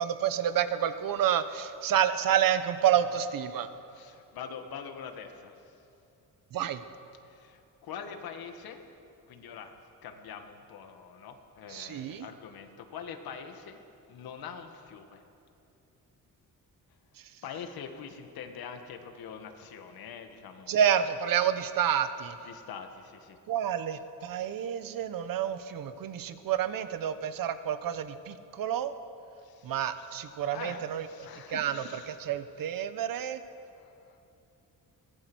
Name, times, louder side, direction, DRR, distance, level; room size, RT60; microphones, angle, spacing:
voice 1, 0.0-3.7 6.5-6.8 11.7-12.3 20.7-22.3 23.5-28.9 29.6-31.1 31.5-33.4, right 9 dB, 70° right, 11 dB, 1.2 m, -29 dB
voice 2, 3.5-5.7 7.3-8.8 9.3-9.7 10.0-13.8 14.1-15.2 17.4-20.8 22.4-23.4 29.4-30.2 30.5-32.2 32.6-32.7 33.6-34.2, left 7 dB, 90° left, 6 dB, 2.0 m, -44 dB
23.0 x 18.5 x 6.3 m, 2.7 s
wide cardioid pair, 170°, 35 cm